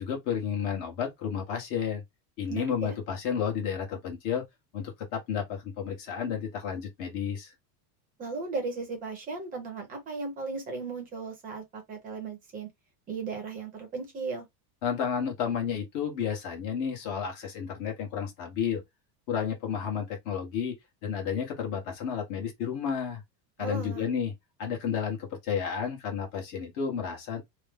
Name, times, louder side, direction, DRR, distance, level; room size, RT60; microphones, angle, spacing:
voice 1, 0.0-2.0 2.4-4.4 4.7-7.5 14.8-18.8 19.3-20.7 21.0-23.2 23.6-24.3 24.6-27.4, left 7 dB, 40° left, 1.2 m, -31 dB
voice 2, 2.5-3.0 8.2-12.7 13.1-14.5 23.6-24.1, right 4 dB, 15° right, 0.7 m, -36 dB
3.1 x 2.1 x 3.5 m
supercardioid pair, 175°, 49 cm